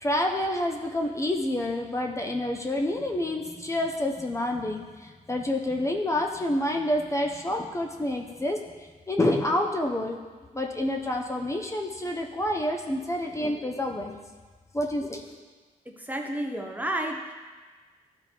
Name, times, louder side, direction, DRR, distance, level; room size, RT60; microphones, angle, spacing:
voice 1, 0.0-8.6 9.1-10.2 10.5-14.2 14.7-15.2, left 1 dB, 20° left, 2 dB, 0.9 m, -28 dB
voice 2, 15.9-17.3, right 1 dB, 10° right, 2 dB, 0.9 m, -31 dB
13.0 x 4.4 x 4.5 m, 1.4 s
cardioid pair, 80°, 15 cm